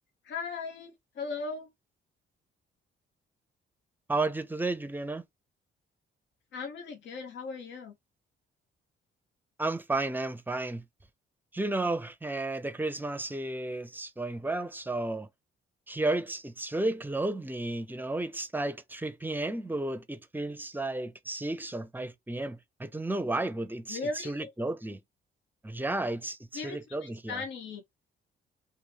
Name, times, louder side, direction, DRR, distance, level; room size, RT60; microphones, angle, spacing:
voice 1, 0.2-1.7 6.5-8.0 23.9-24.5 26.5-27.8, left 4 dB, 65° left, 0.9 m, -38 dB
voice 2, 4.1-5.2 9.6-10.8 11.5-15.3 15.9-24.0 24.3-25.0 25.6-27.4, right 2 dB, 10° right, 0.6 m, -33 dB
3.1 x 2.7 x 3.9 m
cardioid pair, 90°, 20 cm